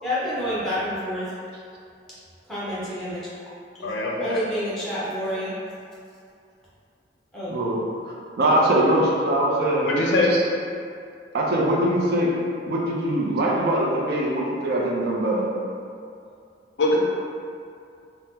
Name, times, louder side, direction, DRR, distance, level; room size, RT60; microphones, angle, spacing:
voice 1, 0.0-1.3 2.5-3.2 3.8-3.9 4.2-5.6 7.3-7.6, equal, ahead, -10 dB, 0.7 m, -28 dB
voice 2, 3.8-4.4 9.8-10.3 16.8-17.0, left 2 dB, 70° left, -2 dB, 0.4 m, -22 dB
voice 3, 7.5-7.8 8.4-9.9 10.2-10.4 11.3-12.3 12.6-15.5, right 1 dB, 55° right, -3 dB, 0.4 m, -22 dB
2.8 x 2.0 x 3.4 m, 2.4 s
head